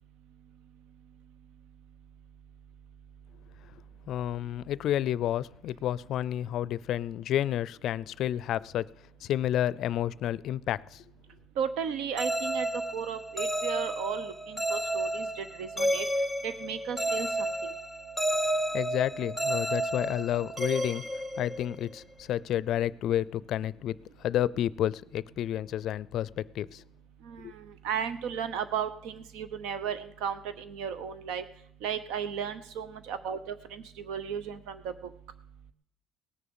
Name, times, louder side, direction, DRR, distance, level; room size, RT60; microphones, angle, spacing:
voice 1, 4.1-8.9 9.2-11.0 18.7-21.0 21.4-26.8 27.4-27.5, left 11 dB, 55° left, 0.4 m, -30 dB
voice 2, 11.6-12.7 12.9-16.0 16.4-17.7 27.2-31.4 31.8-35.1, right 7 dB, 85° right, 0.9 m, -35 dB
sound 1, 12.2-22.0, right 1 dB, ahead, 0.6 m, -31 dB
18.5 x 7.0 x 7.0 m
cardioid pair, 150°, 0 cm